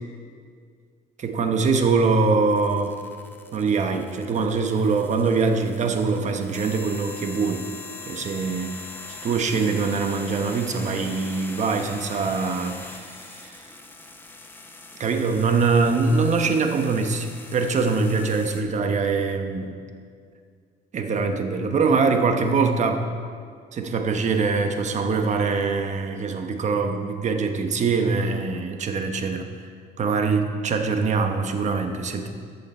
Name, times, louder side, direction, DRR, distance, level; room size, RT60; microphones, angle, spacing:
voice 1, 1.2-2.9 3.5-7.7 8.1-8.8 9.1-13.6 15.0-19.8 20.9-23.1 23.7-29.5 30.0-32.3, right 4 dB, 45° right, 5 dB, 1.1 m, -23 dB
sound 1, 2.5-18.6, left 3 dB, 10° left, 0.9 m, -41 dB
14.0 x 6.9 x 4.4 m, 2.1 s
cardioid pair, 110°, 17 cm